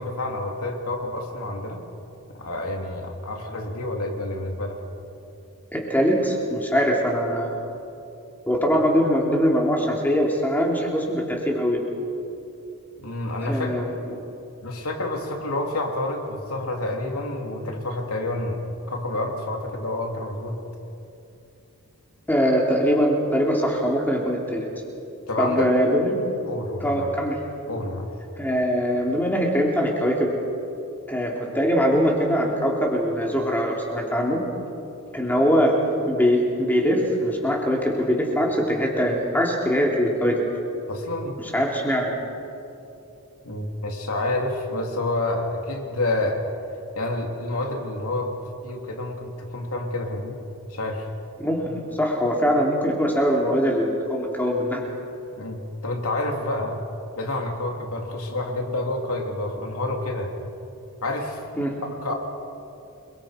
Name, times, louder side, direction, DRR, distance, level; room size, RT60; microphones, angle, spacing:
voice 1, 0.0-1.8 2.3-4.8 13.0-13.8 14.6-20.6 25.3-25.7 26.5-27.1 27.7-28.1 40.9-41.5 43.4-46.4 46.9-48.3 48.6-50.4 50.7-51.1 55.4-56.8 57.2-60.3 61.0-61.4 61.8-62.1, left 2 dB, 80° left, 2 dB, 3.1 m, -28 dB
voice 2, 5.7-7.5 8.5-11.8 13.4-13.9 22.3-24.7 25.4-26.2 26.8-27.4 28.4-30.3 31.1-34.4 35.1-35.7 36.0-40.5 41.4-42.1 51.4-54.8 61.6-61.8, equal, 10° left, -1 dB, 3.2 m, -22 dB
29.5 x 22.5 x 5.2 m, 2.8 s
head